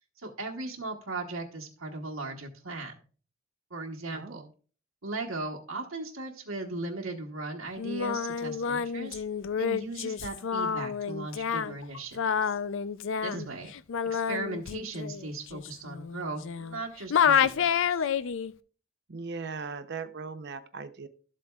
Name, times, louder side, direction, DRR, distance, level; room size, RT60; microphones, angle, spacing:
voice 1, 0.2-2.9 3.7-4.4 5.0-9.2 9.6-12.6 13.2-13.7 14.1-17.9, right 2 dB, 85° right, 0 dB, 1.3 m, -38 dB
voice 2, 4.1-4.5 13.3-13.7 19.1-21.1, right 4 dB, 55° right, 10 dB, 0.7 m, -39 dB
Singing, 7.8-16.8 17.1-18.5, left 7 dB, 65° left, 0.5 m, -29 dB
12.5 x 7.6 x 2.4 m, 0.39 s
head